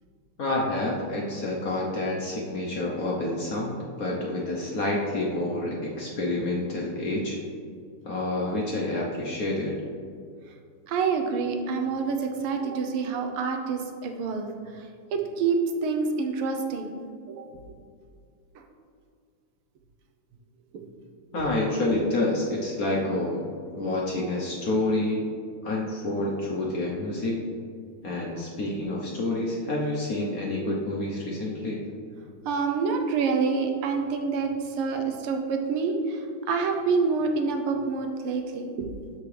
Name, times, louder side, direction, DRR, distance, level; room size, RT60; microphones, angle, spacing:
voice 1, 0.4-7.4 8.0-9.7 21.3-23.4 23.8-25.2 25.6-27.4 28.0-31.8, left 2 dB, 55° left, -3 dB, 1.0 m, -28 dB
voice 2, 10.9-14.5 15.1-17.0 17.3-17.5 18.5-18.6 21.4-21.5 32.4-38.9, right 4 dB, 85° right, 4 dB, 1.7 m, -27 dB
13.0 x 4.8 x 3.3 m, 2.2 s
omnidirectional pair, 2.4 m